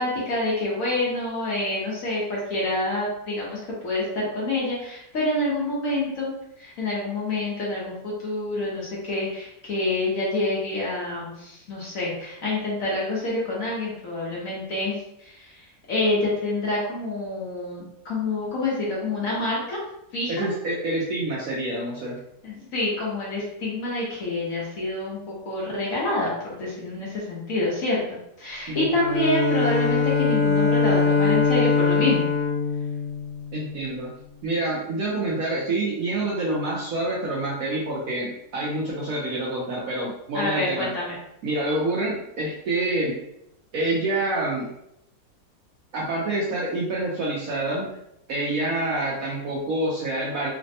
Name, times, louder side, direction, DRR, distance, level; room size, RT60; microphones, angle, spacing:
voice 1, 0.0-19.8 20.1-20.4 22.4-32.3 40.3-41.2, left 2 dB, 60° left, -5 dB, 1.0 m, -27 dB
voice 2, 20.3-22.2 28.7-28.9 33.5-34.1 34.4-40.9 41.4-43.2 43.7-44.7 45.9-47.9 48.3-50.5, right 2 dB, 70° right, -5 dB, 0.8 m, -27 dB
Bowed string instrument, 28.9-33.8, left 4 dB, 75° left, 1.4 m, -22 dB
3.3 x 2.1 x 2.7 m, 0.81 s
omnidirectional pair, 1.9 m